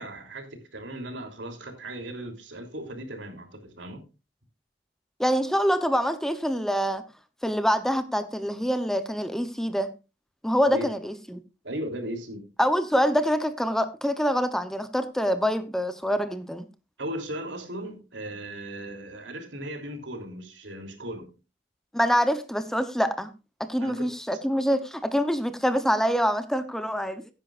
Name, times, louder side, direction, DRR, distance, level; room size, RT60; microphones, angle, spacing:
voice 1, 0.0-4.0 10.7-10.9 11.6-12.4 17.0-21.3 23.8-24.1, right 1 dB, 75° right, 3.2 m, -37 dB
voice 2, 5.2-7.0 7.4-9.9 10.4-11.4 12.6-16.6 21.9-23.3 23.6-27.2, equal, ahead, 0.8 m, -25 dB
16.0 x 10.0 x 2.5 m
head